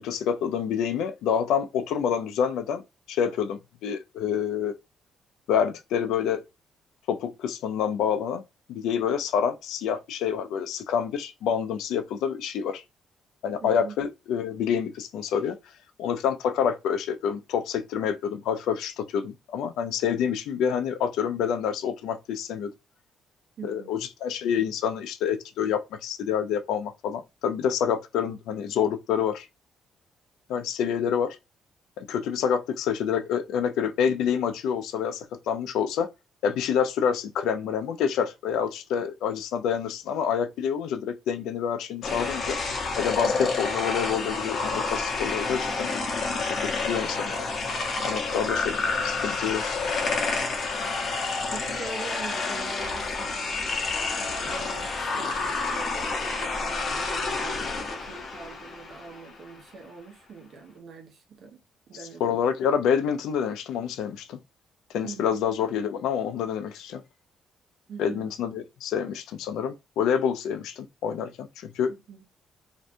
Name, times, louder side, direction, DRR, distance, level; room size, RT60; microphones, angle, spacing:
voice 1, 0.0-2.8 3.1-4.7 5.5-6.4 7.1-8.4 8.7-12.8 13.4-15.6 16.0-22.7 23.6-29.5 30.5-31.4 32.0-36.1 36.4-42.6 43.0-45.9 46.4-46.5 46.8-47.5 48.0-49.8 62.2-64.4 64.9-67.0 68.0-71.9, left 8 dB, 85° left, 0.4 m, -27 dB
voice 2, 13.6-14.0 23.6-23.9 43.2-43.5 51.5-61.6 61.9-62.5 65.0-65.4 67.9-68.3 71.9-72.3, right 4 dB, 65° right, 0.8 m, -43 dB
sound 1, 42.0-59.4, left 3 dB, 55° left, 0.7 m, -29 dB
2.6 x 2.2 x 2.6 m
cardioid pair, 90°, 0 cm